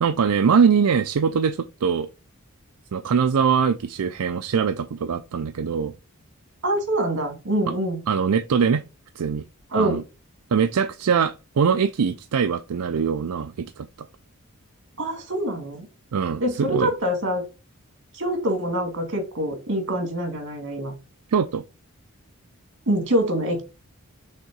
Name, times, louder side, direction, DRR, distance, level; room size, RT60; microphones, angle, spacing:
voice 1, 0.0-2.1 2.9-5.9 8.1-8.8 9.2-9.4 9.8-10.0 10.5-13.9 16.1-16.9 21.3-21.6, right 6 dB, 80° right, 0.5 m, -22 dB
voice 2, 6.6-8.0 9.7-10.0 15.0-15.9 16.4-17.4 18.1-20.9 22.9-23.6, right 1 dB, 55° right, 2.4 m, -25 dB
6.5 x 3.7 x 4.6 m
head